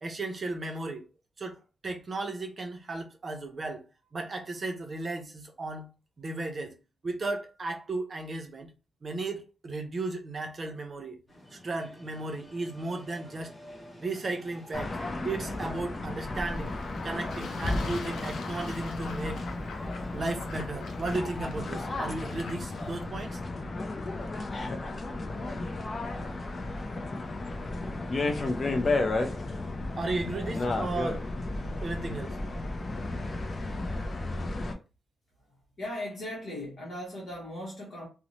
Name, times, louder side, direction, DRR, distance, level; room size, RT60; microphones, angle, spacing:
voice 1, 0.0-1.0 1.4-1.6 1.8-3.8 4.1-5.9 6.2-6.7 7.0-8.7 9.0-11.2 11.5-13.5 14.0-14.9 15.2-16.7 17.0-19.4 20.1-23.4 29.1-29.3 30.0-31.2 31.8-32.4 33.8-34.0, right 2 dB, 35° right, 0.5 m, -35 dB
sound 1, 11.3-18.4, equal, 10° left, 0.8 m, -51 dB
sound 2, 14.7-34.7, left 2 dB, 35° left, 0.4 m, -33 dB
Fowl / Bird / Water, 16.4-23.0, left 4 dB, 90° left, 0.5 m, -45 dB
voice 2, 35.5-38.1, left 1 dB, 50° left, 0.9 m, -38 dB
2.6 x 2.0 x 2.9 m
wide cardioid pair, 145°, 0 cm